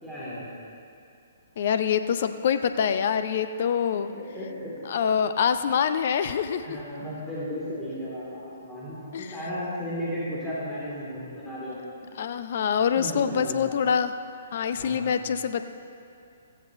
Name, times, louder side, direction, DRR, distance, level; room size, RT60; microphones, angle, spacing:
voice 1, 0.0-0.5 3.9-4.7 5.1-5.2 6.6-11.8 12.9-13.8 14.7-15.2, equal, 5° left, -10 dB, 3.1 m, -35 dB
voice 2, 1.6-4.1 4.9-6.8 9.1-9.4 12.2-14.1 14.5-15.7, left 7 dB, 45° left, 10 dB, 0.6 m, -25 dB
15.5 x 15.0 x 3.1 m, 2.5 s
figure-of-eight pair, 125°, 0 cm